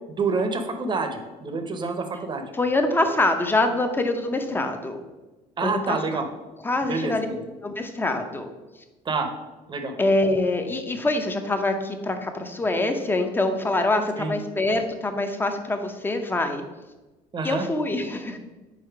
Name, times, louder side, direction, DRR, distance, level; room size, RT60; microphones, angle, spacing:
voice 1, 0.1-2.4 5.6-6.3 6.8-7.4 9.1-9.3 9.7-9.9 14.2-14.3 17.3-17.6, right 4 dB, 30° right, 6 dB, 0.8 m, -27 dB
voice 2, 2.5-5.0 5.6-6.2 6.6-7.3 7.6-8.5 10.0-16.6 17.4-18.4, left 2 dB, 15° left, 6 dB, 0.7 m, -25 dB
4.9 x 4.2 x 4.7 m, 1.1 s
supercardioid pair, 100°, 16 cm